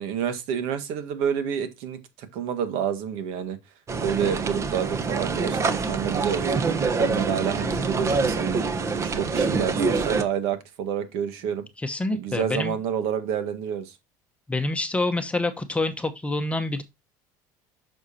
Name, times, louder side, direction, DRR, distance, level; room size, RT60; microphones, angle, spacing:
voice 1, 0.0-3.6 4.0-8.6 9.0-11.7 12.1-13.9, right 8 dB, 75° right, 1.7 m, -29 dB
sound 1, 3.9-10.2, right 4 dB, 30° right, 1.1 m, -25 dB
voice 2, 11.8-12.8 14.5-16.8, left 2 dB, 15° left, 1.0 m, -27 dB
8.1 x 6.4 x 2.8 m
supercardioid pair, 110°, 10 cm